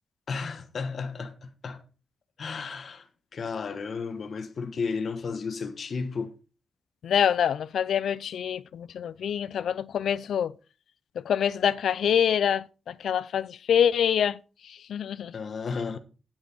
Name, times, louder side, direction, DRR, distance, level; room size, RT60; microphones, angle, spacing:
voice 1, 0.3-1.8 2.4-6.3 15.3-16.0, left 5 dB, 55° left, 1.1 m, -33 dB
voice 2, 7.0-10.5 11.2-15.3, left 8 dB, 80° left, 0.4 m, -26 dB
8.8 x 8.6 x 4.3 m
cardioid pair, 100°, 0 cm